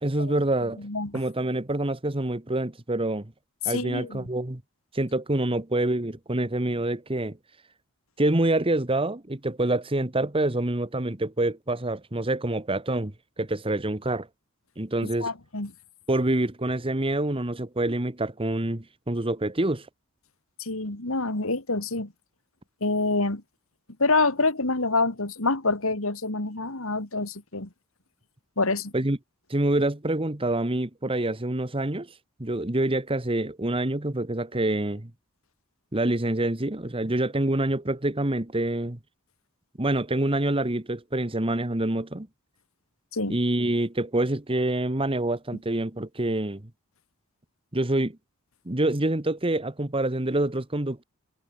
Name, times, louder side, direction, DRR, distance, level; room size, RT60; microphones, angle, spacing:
voice 1, 0.0-0.8 1.1-3.3 3.6-4.6 4.9-7.4 8.2-14.3 14.8-15.3 16.1-19.9 28.9-29.2 29.5-32.1 32.4-35.1 35.9-39.0 39.8-42.3 43.3-46.6 47.7-48.2 48.6-51.0, right 1 dB, 25° right, 1.4 m, -26 dB
voice 2, 0.8-1.1 3.6-4.2 15.2-15.7 20.6-22.1 22.8-23.4 24.0-27.7 28.6-28.9 43.1-43.4, left 3 dB, 65° left, 2.7 m, -26 dB
head